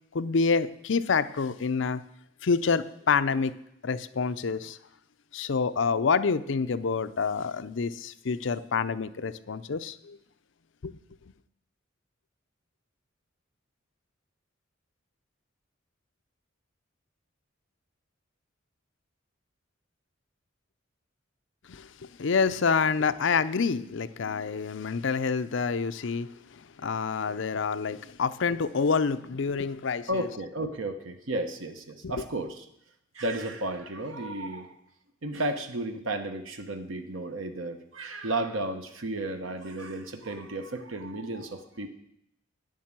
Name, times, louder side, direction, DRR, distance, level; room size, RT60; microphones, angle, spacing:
voice 1, 0.1-2.0 2.4-3.5 3.8-4.8 5.3-10.2 10.8-10.9 21.7-30.3 32.0-32.1, left 5 dB, 65° left, 12 dB, 0.5 m, -27 dB
voice 2, 30.1-32.7 33.1-34.7 35.2-41.9, right 1 dB, 80° right, 7 dB, 1.0 m, -33 dB
9.3 x 7.4 x 7.5 m, 0.76 s
head